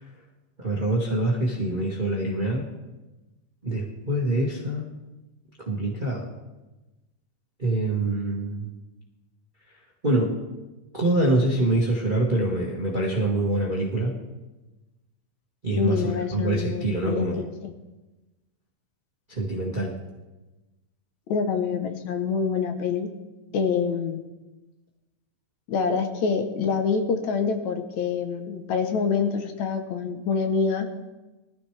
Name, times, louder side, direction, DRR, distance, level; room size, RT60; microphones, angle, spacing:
voice 1, 0.6-2.7 3.6-4.9 5.6-6.3 7.6-8.7 10.0-10.3 10.9-14.1 15.6-17.4 19.3-19.9, right 1 dB, 30° right, -3 dB, 0.9 m, -25 dB
voice 2, 15.8-17.7 21.3-23.1 23.5-24.2 25.7-30.9, left 5 dB, 70° left, 5 dB, 2.1 m, -26 dB
20.5 x 13.5 x 3.3 m, 1.1 s
omnidirectional pair, 3.7 m